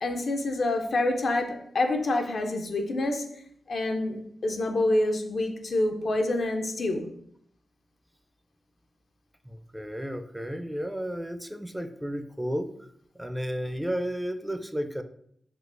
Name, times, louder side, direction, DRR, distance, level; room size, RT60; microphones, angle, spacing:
voice 1, 0.0-3.3 3.7-7.1, left 2 dB, 65° left, 4 dB, 0.4 m, -27 dB
voice 2, 9.5-12.7 13.2-15.0, equal, 10° right, 9 dB, 0.4 m, -33 dB
3.8 x 2.5 x 2.5 m, 0.68 s
supercardioid pair, 40°, 0 cm